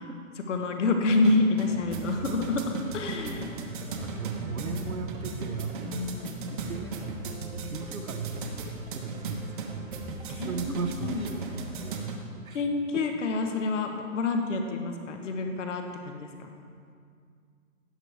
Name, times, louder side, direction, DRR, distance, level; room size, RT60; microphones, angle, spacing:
voice 1, 0.5-3.6 5.8-6.4 10.3-11.6 12.5-16.5, left 3 dB, 60° left, 4 dB, 1.1 m, -28 dB
sound 1, 1.0-12.2, right 3 dB, 35° right, 1.1 m, -37 dB
voice 2, 3.6-6.0 6.5-9.9 10.3-12.6, right 5 dB, 80° right, 6 dB, 1.2 m, -38 dB
17.0 x 6.3 x 3.4 m, 2.2 s
hypercardioid pair, 160°, 41 cm